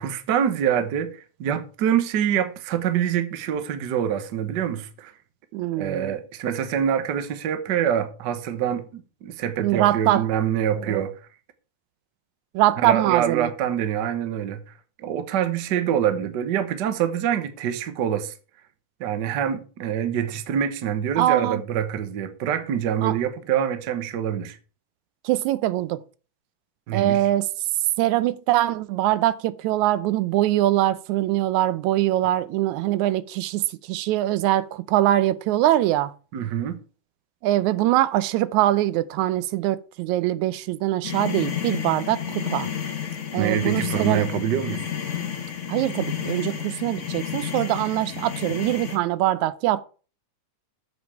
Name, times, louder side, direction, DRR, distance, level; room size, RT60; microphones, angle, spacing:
voice 1, 0.0-5.1 5.8-11.1 12.8-14.6 15.0-18.3 19.0-24.6 26.9-27.2 36.3-36.8 43.4-44.9, right 9 dB, 60° right, 1.1 m, -25 dB
voice 2, 5.5-6.1 9.6-10.3 10.9-11.0 12.5-13.5 21.2-21.6 23.0-23.2 25.2-26.0 26.9-27.5 28.0-36.1 37.4-42.7 43.3-44.3 45.7-49.8, right 14 dB, 85° right, 2.0 m, -23 dB
sound 1, 41.0-49.0, left 8 dB, 60° left, 0.7 m, -31 dB
7.9 x 5.3 x 7.3 m
omnidirectional pair, 3.3 m